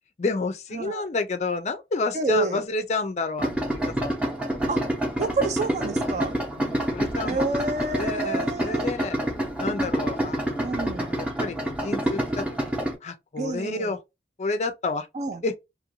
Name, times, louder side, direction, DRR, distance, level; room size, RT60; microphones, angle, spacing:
voice 1, 0.2-4.1 4.5-4.8 6.5-7.5 8.0-9.2 9.6-14.0 14.4-15.1 15.4-15.6, left 3 dB, 40° left, 0.4 m, -30 dB
voice 2, 0.7-1.1 2.1-2.6 4.7-4.8 5.2-6.4 7.2-8.9 10.6-11.1 13.4-13.9 15.1-15.4, right 3 dB, 40° right, 0.4 m, -28 dB
Idling, 3.4-12.9, right 1 dB, 5° right, 0.7 m, -27 dB
2.9 x 2.5 x 2.9 m
head